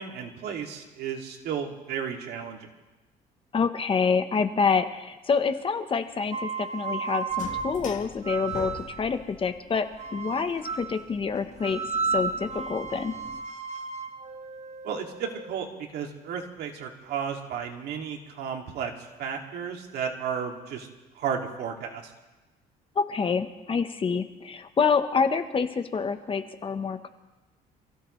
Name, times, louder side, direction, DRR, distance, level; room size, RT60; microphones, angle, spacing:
voice 1, 0.0-2.7 14.8-20.9 21.1-22.1, right 7 dB, 75° right, 1 dB, 2.5 m, -33 dB
voice 2, 3.5-8.7 9.0-11.8 12.1-13.1 23.0-27.1, left 5 dB, 30° left, 9 dB, 1.1 m, -27 dB
sound 1, 6.3-9.1 10.0-11.0 11.6-15.6, right 5 dB, 40° right, 1.6 m, -33 dB
sound 2, 7.3-13.4, left 6 dB, 45° left, 1.5 m, -44 dB
27.5 x 16.0 x 3.3 m, 1.1 s
cardioid pair, 110°, 17 cm